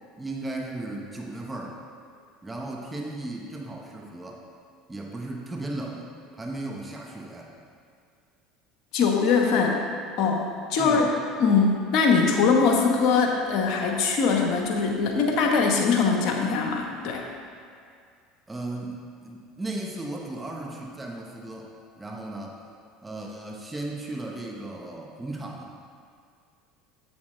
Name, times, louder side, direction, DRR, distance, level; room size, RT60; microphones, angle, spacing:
voice 1, 0.2-1.8 2.4-4.4 4.9-7.5 10.8-11.1 18.5-19.0 19.2-21.7 22.0-22.6 23.0-25.7, right 2 dB, 15° right, -1 dB, 1.1 m, -36 dB
voice 2, 8.9-9.8 10.2-11.1 11.4-17.3, left 5 dB, 60° left, 1 dB, 1.1 m, -22 dB
7.6 x 7.6 x 3.3 m, 2.3 s
hypercardioid pair, 80°, 0 cm